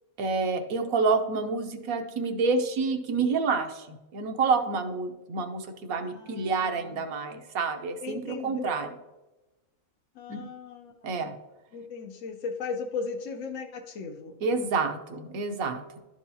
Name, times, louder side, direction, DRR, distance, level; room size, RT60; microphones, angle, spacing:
voice 1, 0.2-8.9 10.3-10.4 11.0-11.3 14.4-16.0, right 4 dB, 85° right, 5 dB, 1.3 m, -28 dB
voice 2, 6.0-7.0 8.0-8.7 10.1-11.3 11.7-14.4, left 5 dB, 65° left, 3 dB, 1.0 m, -37 dB
11.5 x 4.6 x 2.7 m, 1.1 s
omnidirectional pair, 1.4 m